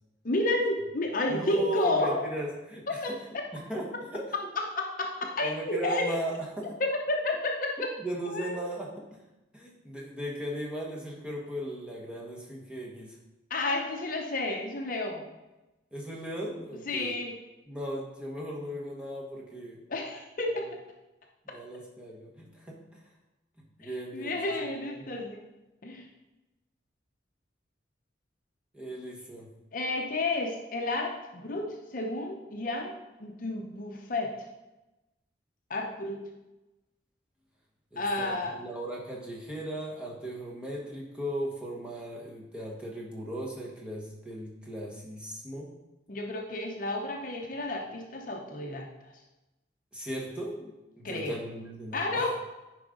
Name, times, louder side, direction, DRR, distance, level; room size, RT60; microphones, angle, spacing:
voice 1, 0.2-2.2 2.9-3.2 4.6-6.2 6.8-7.9 8.3-8.8 13.5-15.2 16.9-17.3 19.9-20.8 23.8-25.4 25.8-26.1 29.7-34.4 35.7-36.3 38.0-38.5 46.1-48.9 51.0-51.4 51.9-52.3, left 2 dB, 45° left, 1 dB, 0.7 m, -31 dB
voice 2, 1.3-3.0 3.5-4.3 5.4-6.7 7.8-9.0 9.5-13.2 15.9-17.1 17.7-19.8 20.4-20.7 21.4-23.0 23.8-25.1 28.7-29.5 37.9-45.7 49.9-52.3, right 1 dB, 5° right, -3 dB, 1.4 m, -37 dB
9.7 x 5.0 x 3.8 m, 1.0 s
head